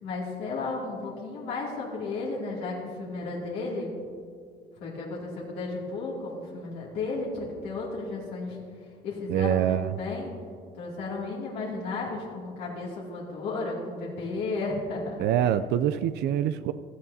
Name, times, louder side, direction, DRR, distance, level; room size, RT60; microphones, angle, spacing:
voice 1, 0.0-4.0 4.8-8.6 9.0-10.3 10.8-15.2, left 3 dB, 85° left, -5 dB, 2.6 m, -33 dB
voice 2, 9.3-9.9 15.2-16.7, right 10 dB, 80° right, 12 dB, 0.4 m, -25 dB
16.0 x 13.0 x 2.8 m, 2.2 s
cardioid pair, 110°, 17 cm